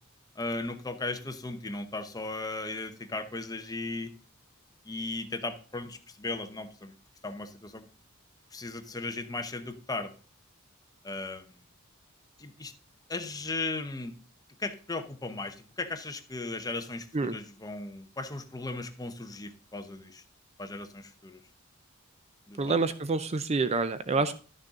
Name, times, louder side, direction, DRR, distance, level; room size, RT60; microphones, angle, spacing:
voice 1, 0.4-4.1 4.8-6.9 7.2-7.9 8.5-10.1 11.0-11.6 12.4-12.7 13.1-14.1 14.6-20.2 20.6-21.4 22.5-22.8 24.1-24.2, left 2 dB, 15° left, 8 dB, 0.8 m, -36 dB
voice 2, 22.6-24.3, right 3 dB, 30° right, 12 dB, 0.5 m, -27 dB
11.5 x 6.6 x 3.7 m, 0.39 s
head